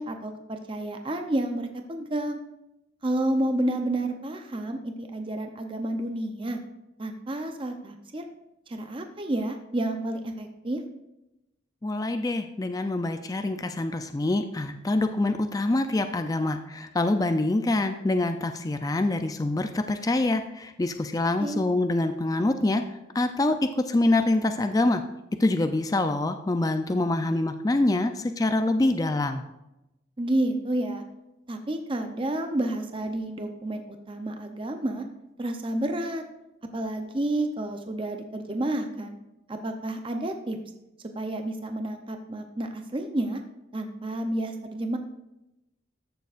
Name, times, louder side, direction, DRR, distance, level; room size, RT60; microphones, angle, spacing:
voice 1, 0.0-2.4 3.0-6.6 7.0-8.2 8.7-10.8 21.4-21.6 30.2-31.0 31.5-33.8 34.1-35.0 35.4-36.2 36.7-39.2 39.5-40.6 41.2-43.4 43.7-45.0, right 1 dB, 25° right, 5 dB, 0.6 m, -30 dB
voice 2, 11.8-22.8 23.1-25.0 25.4-29.4, left 2 dB, 20° left, 7 dB, 0.3 m, -25 dB
14.0 x 6.9 x 2.4 m, 0.91 s
head